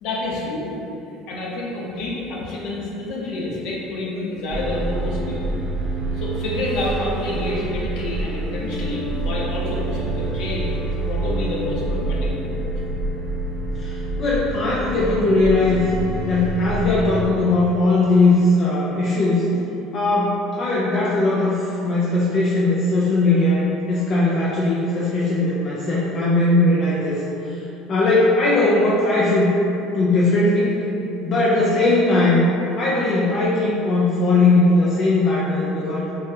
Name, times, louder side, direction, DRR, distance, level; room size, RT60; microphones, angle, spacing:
voice 1, 0.0-0.7 1.3-5.6 6.1-12.6, left 2 dB, 60° left, -4 dB, 0.8 m, -28 dB
sound 1, 4.5-17.2, right 2 dB, 50° right, 0.9 m, -27 dB
voice 2, 13.8-15.8 16.2-19.5 19.9-27.6 27.9-29.5 29.9-30.8 31.2-32.5 32.8-36.1, left 2 dB, 40° left, -6 dB, 0.4 m, -19 dB
4.6 x 2.3 x 2.9 m, 2.9 s
cardioid pair, 145°, 0 cm